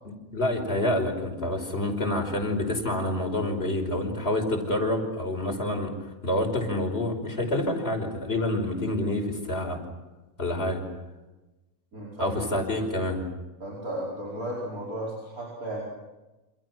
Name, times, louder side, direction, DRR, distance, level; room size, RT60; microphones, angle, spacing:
voice 1, 0.3-5.9 6.2-9.8 10.4-10.8 12.2-13.2, left 1 dB, 45° left, 3 dB, 5.6 m, -27 dB
voice 2, 11.9-12.4 13.6-15.8, right 1 dB, 85° right, -3 dB, 5.6 m, -34 dB
29.0 x 27.5 x 6.3 m, 1.1 s
omnidirectional pair, 1.5 m